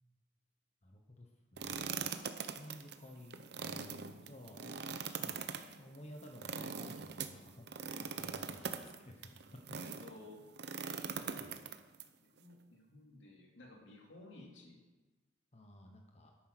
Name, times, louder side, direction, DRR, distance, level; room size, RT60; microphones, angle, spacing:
voice 1, 0.8-2.0 2.5-9.2 9.7-9.8 11.3-11.5 15.5-16.3, left 1 dB, 35° left, 2 dB, 1.0 m, -55 dB
sound 1, 1.6-10.1 10.6-12.0, right 6 dB, 60° right, 0.8 m, -42 dB
voice 2, 9.8-10.4 11.1-11.3 12.2-14.8, left 2 dB, 75° left, 0 dB, 2.6 m, -55 dB
10.0 x 8.9 x 6.1 m, 1.2 s
head